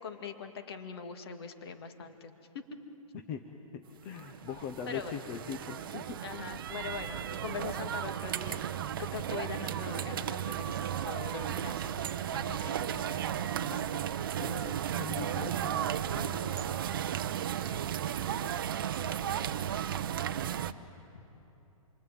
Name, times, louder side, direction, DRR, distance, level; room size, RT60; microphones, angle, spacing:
voice 1, 0.0-2.3 4.9-5.1 6.2-8.6 9.1-13.3 16.1-16.6 21.1-21.2, left 5 dB, 45° left, 6 dB, 2.2 m, -42 dB
voice 2, 3.7-6.2 13.6-14.1 14.3-15.7, left 7 dB, 15° left, 5 dB, 0.6 m, -41 dB
sound 1, 4.1-20.7, right 9 dB, 40° right, 0.7 m, -34 dB
27.5 x 23.5 x 9.1 m, 3.0 s
hypercardioid pair, 175°, 18 cm